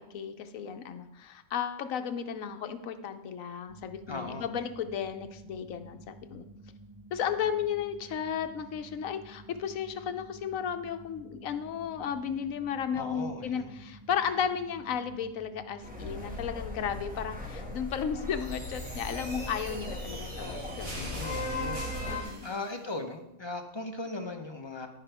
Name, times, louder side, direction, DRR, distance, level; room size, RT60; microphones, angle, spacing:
voice 1, 0.0-6.4 7.1-21.0 22.1-22.5, left 8 dB, 80° left, 9 dB, 1.1 m, -34 dB
sound 1, 3.7-17.1, right 2 dB, 30° right, 1.0 m, -51 dB
voice 2, 4.1-4.5 12.9-13.7 20.9-21.8 22.4-24.9, left 2 dB, 25° left, 4 dB, 0.8 m, -38 dB
sound 2, 15.8-22.2, left 2 dB, 5° right, 1.8 m, -37 dB
sound 3, 18.3-22.7, right 1 dB, 75° right, 3.1 m, -44 dB
11.0 x 9.7 x 3.4 m, 0.86 s
omnidirectional pair, 1.4 m